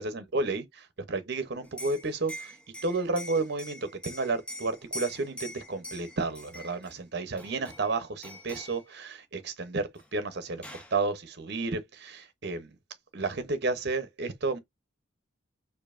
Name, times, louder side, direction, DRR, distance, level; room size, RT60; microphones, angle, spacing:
voice 1, 0.0-2.6 2.8-12.7 13.1-14.6, right 3 dB, 55° right, 0.7 m, -32 dB
Liquid, 1.6-6.9 7.4-7.9 8.2-8.8 10.0-10.1 10.3-11.0, equal, 5° left, 0.5 m, -43 dB
4.5 x 2.6 x 2.5 m
head